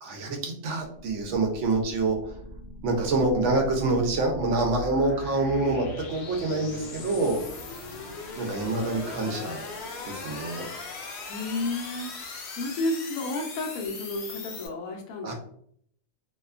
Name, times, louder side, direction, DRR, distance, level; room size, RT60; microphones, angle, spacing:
voice 1, 0.0-2.3 2.8-7.4 8.4-9.6 10.0-10.6 15.2-15.3, right 2 dB, 70° right, 2 dB, 0.8 m, -26 dB
sound 1, 0.8-14.7, left 3 dB, 65° left, 0.7 m, -40 dB
voice 2, 11.2-12.1 12.6-15.3, left 2 dB, 85° left, 2 dB, 1.0 m, -31 dB
2.7 x 2.2 x 2.3 m, 0.65 s
omnidirectional pair, 1.4 m